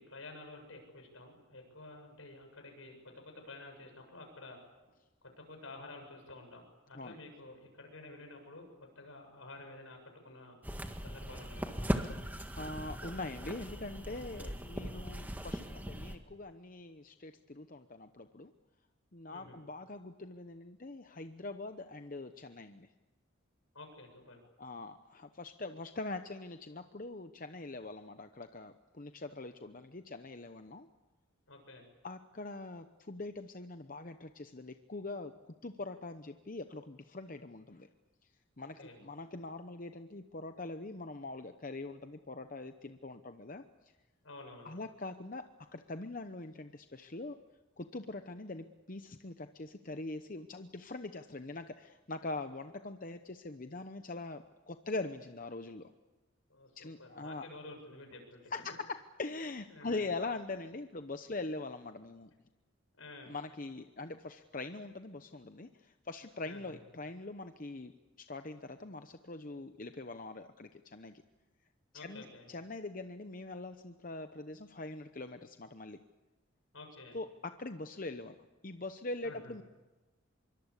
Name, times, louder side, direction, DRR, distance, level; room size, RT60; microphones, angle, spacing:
voice 1, 0.0-4.6 5.4-10.6 11.0-11.7 14.3-14.6 19.3-19.6 23.7-24.4 31.5-31.9 38.6-39.0 44.2-44.8 56.5-58.4 59.7-60.1 63.0-63.4 66.4-66.8 71.9-72.5 76.7-77.2 79.2-79.5, left 2 dB, 80° left, 4 dB, 7.4 m, -51 dB
sound 1, 10.6-16.2, equal, 10° right, 1.7 m, -39 dB
voice 2, 12.6-18.5 19.1-22.9 24.6-30.9 32.0-37.9 38.6-43.9 44.6-47.4 47.8-55.9 56.8-57.5 58.5-62.3 63.3-71.2 71.9-76.0 77.1-78.4 78.6-79.6, left 2 dB, 40° left, 8 dB, 0.9 m, -43 dB
25.5 x 23.5 x 8.3 m, 1.2 s
head